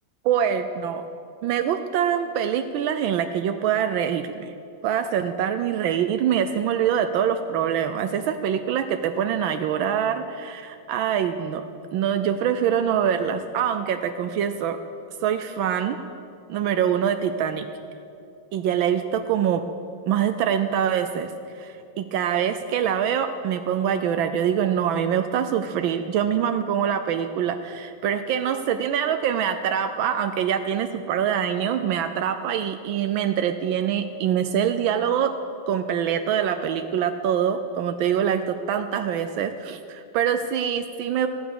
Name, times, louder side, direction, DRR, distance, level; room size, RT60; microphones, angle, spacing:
voice 1, 0.2-1.1 1.4-4.5 4.8-14.8 15.2-16.0 16.5-17.7 18.5-19.7 20.1-21.3 21.6-35.4 35.7-41.3, right 8 dB, 80° right, 9 dB, 1.4 m, -24 dB
14.5 x 11.0 x 6.8 m, 2.5 s
omnidirectional pair, 2.1 m